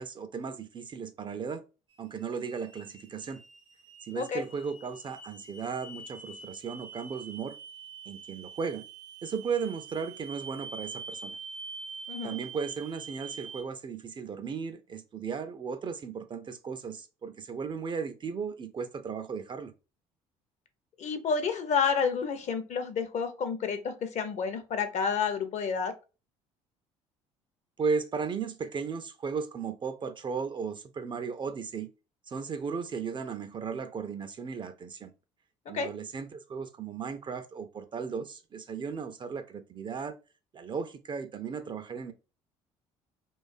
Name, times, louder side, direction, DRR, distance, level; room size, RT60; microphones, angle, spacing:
voice 1, 0.0-1.6 2.0-3.4 4.0-7.6 8.1-8.8 9.2-11.4 12.2-19.7 27.8-31.9 32.3-35.1 35.7-40.1 40.5-42.1, right 5 dB, 30° right, 0.3 m, -35 dB
sound 1, 1.9-13.6, right 4 dB, 90° right, 0.7 m, -45 dB
voice 2, 21.0-25.9 35.7-35.9, left 6 dB, 45° left, 0.5 m, -30 dB
2.4 x 2.3 x 2.3 m
hypercardioid pair, 60°, 16 cm